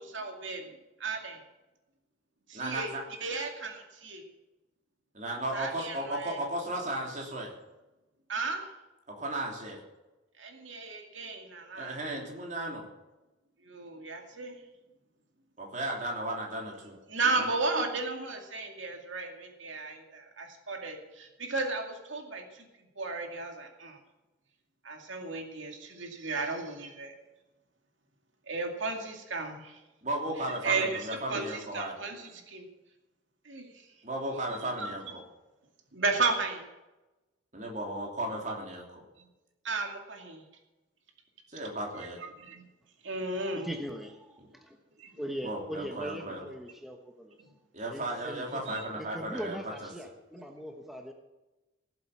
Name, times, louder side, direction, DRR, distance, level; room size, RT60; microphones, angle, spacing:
voice 1, 0.1-1.4 2.5-3.0 3.2-4.2 5.5-6.4 8.3-8.6 10.4-12.0 13.6-14.6 17.1-22.6 23.0-24.0 24.8-27.1 28.5-29.8 30.5-32.7 33.5-33.8 34.6-34.9 35.9-36.7 39.6-40.4 42.2-42.7 43.0-43.7 45.0-45.1 48.7-48.8, right 3 dB, 75° right, 3 dB, 2.3 m, -34 dB
voice 2, 2.5-3.0 5.1-7.5 9.1-9.8 11.7-12.8 15.6-17.0 17.3-17.5 30.0-31.9 34.0-35.2 37.5-39.0 41.5-42.2 44.4-44.5 45.4-46.4 47.7-49.9, right 1 dB, 40° right, 0 dB, 3.3 m, -35 dB
voice 3, 43.3-44.8 45.2-47.4 47.9-48.7 49.0-51.1, equal, ahead, 3 dB, 1.1 m, -40 dB
17.0 x 7.9 x 7.2 m, 1.1 s
head